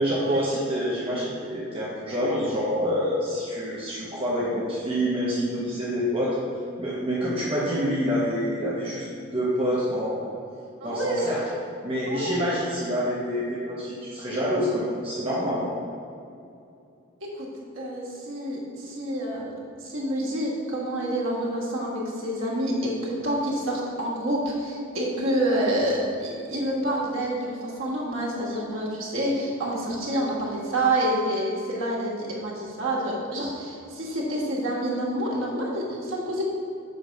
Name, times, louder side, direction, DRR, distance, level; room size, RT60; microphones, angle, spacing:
voice 1, 0.0-6.4 6.8-9.1 9.3-10.3 10.8-11.4 11.8-15.7, equal, 25° right, -7 dB, 0.9 m, -27 dB
voice 2, 7.6-7.9 10.8-11.5 12.1-12.6 17.3-17.4 17.7-19.5 19.8-36.5, right 1 dB, 75° right, -4 dB, 1.5 m, -28 dB
6.5 x 3.4 x 5.2 m, 2.6 s
head